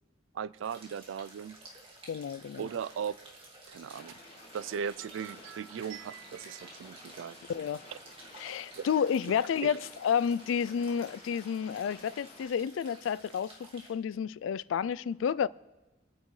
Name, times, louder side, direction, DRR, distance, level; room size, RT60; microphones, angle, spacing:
voice 1, 0.3-1.6 2.6-3.2 3.7-4.2 4.5-7.4 8.7-8.9 9.6-9.8, right 7 dB, 85° right, 0.3 m, -37 dB
sound 1, 0.6-13.9, right 2 dB, 30° right, 2.1 m, -53 dB
voice 2, 2.1-2.6 7.5-7.8 8.4-15.5, left 7 dB, 80° left, 0.3 m, -30 dB
sound 2, 3.9-12.5, left 3 dB, 30° left, 1.7 m, -54 dB
26.0 x 9.1 x 3.2 m
head